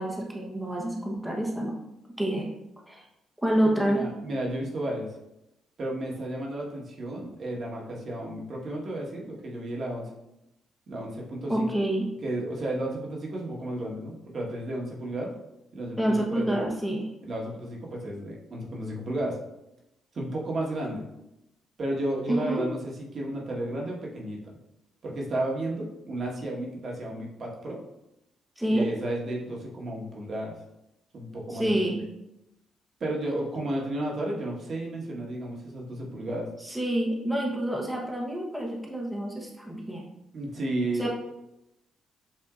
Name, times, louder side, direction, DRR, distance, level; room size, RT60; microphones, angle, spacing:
voice 1, 0.0-1.8 2.2-2.5 2.9-3.0 3.4-4.0 11.5-12.1 16.0-17.1 22.3-22.7 28.6-28.9 31.5-32.0 36.6-40.1 41.0-41.1, right 1 dB, 5° right, -1 dB, 0.9 m, -27 dB
voice 2, 3.8-5.1 5.8-10.1 10.9-11.7 12.2-15.3 15.7-16.6 17.2-19.4 20.1-21.0 21.8-24.4 25.0-27.8 28.7-30.6 31.1-31.8 33.0-36.5 40.3-41.1, right 1 dB, 50° right, -2 dB, 1.3 m, -33 dB
7.6 x 2.7 x 2.4 m, 0.89 s
cardioid pair, 90°, 0 cm